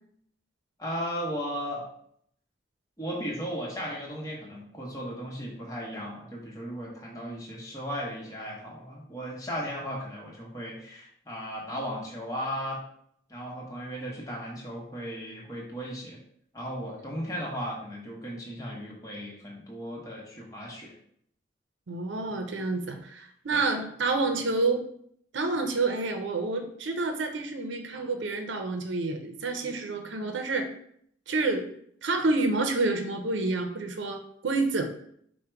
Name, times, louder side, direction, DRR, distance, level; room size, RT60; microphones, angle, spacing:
voice 1, 0.8-1.8 3.0-12.8 13.3-16.2 16.5-20.9 23.5-23.6, equal, 20° left, -3 dB, 0.9 m, -36 dB
voice 2, 21.9-24.8 25.3-30.7 31.3-31.6 32.0-34.8, right 3 dB, 85° right, 5 dB, 0.6 m, -28 dB
4.8 x 2.2 x 4.4 m, 0.66 s
head